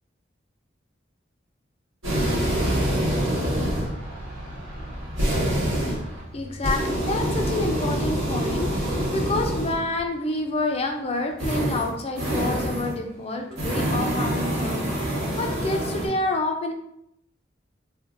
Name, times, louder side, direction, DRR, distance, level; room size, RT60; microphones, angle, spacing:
sound 1, 2.0-10.0 11.4-13.0 13.5-16.1, right 1 dB, 85° right, 1.1 m, -26 dB
voice 1, 6.3-16.7, left 2 dB, 30° left, 4 dB, 0.3 m, -28 dB
3.5 x 2.6 x 2.5 m, 0.76 s
head